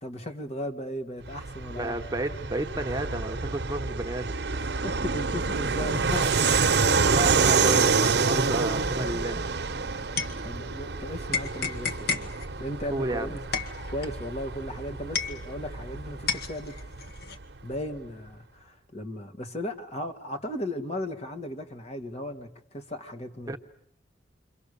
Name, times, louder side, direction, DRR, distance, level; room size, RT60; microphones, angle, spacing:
voice 1, 0.0-2.0 4.5-6.4 10.4-12.3 12.6-13.4 13.9-16.8 17.6-23.6, left 1 dB, 40° left, 7 dB, 2.0 m, -36 dB
Fixed-wing aircraft airplane, 1.2-17.4, right 4 dB, 65° right, 1.0 m, -28 dB
voice 2, 1.7-4.3 7.0-9.4 12.9-13.4 23.5-23.6, right 1 dB, 20° right, 6 dB, 1.0 m, -31 dB
sound 1, 9.4-10.9 11.3-15.9 16.3-17.4, left 5 dB, 60° left, 1.8 m, -33 dB
28.5 x 24.0 x 6.8 m, 0.72 s
head